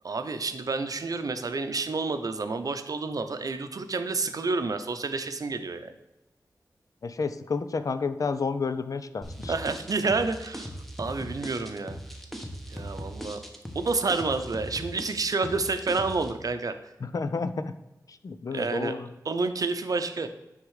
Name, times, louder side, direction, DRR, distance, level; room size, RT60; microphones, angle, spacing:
voice 1, 0.0-5.9 9.5-10.7 11.0-12.0 12.7-13.4 13.7-16.7 18.5-18.9 19.3-20.3, right 3 dB, 60° right, 8 dB, 0.7 m, -29 dB
voice 2, 7.0-9.5 17.0-17.7 18.1-19.1, left 4 dB, 55° left, 11 dB, 0.5 m, -30 dB
sound 1, 9.2-16.3, equal, 5° left, 1.0 m, -39 dB
9.6 x 3.7 x 4.8 m, 0.97 s
wide cardioid pair, 95°, 7 cm